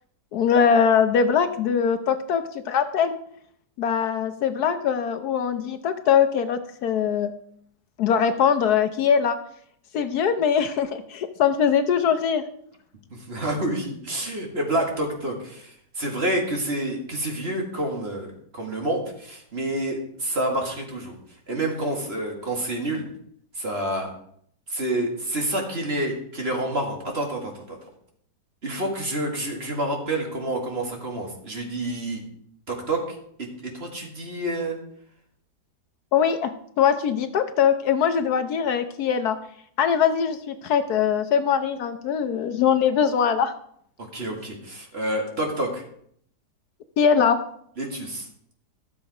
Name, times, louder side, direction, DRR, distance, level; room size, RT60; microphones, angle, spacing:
voice 1, 0.3-3.2 3.8-7.3 8.0-9.4 9.9-12.4 36.1-39.4 39.8-43.5 47.0-47.4, left 7 dB, 70° left, 9 dB, 1.2 m, -22 dB
voice 2, 13.1-21.2 21.5-23.0 23.6-24.1 24.7-27.8 28.6-32.2 32.7-34.8 44.1-45.8 47.8-48.3, right 1 dB, 35° right, 1 dB, 2.1 m, -28 dB
13.0 x 7.1 x 4.8 m, 0.67 s
omnidirectional pair, 1.8 m